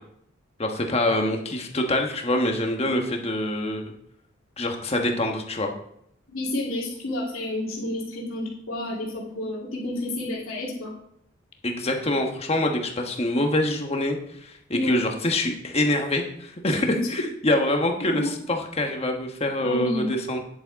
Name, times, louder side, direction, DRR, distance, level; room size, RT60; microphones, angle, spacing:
voice 1, 0.6-3.8 4.6-5.7 11.6-20.4, left 1 dB, 30° left, 3 dB, 1.2 m, -25 dB
voice 2, 6.3-10.9 14.7-14.9 16.7-17.0 18.1-18.3 19.6-20.1, left 1 dB, 85° left, -5 dB, 2.6 m, -30 dB
10.0 x 7.1 x 4.1 m, 0.72 s
head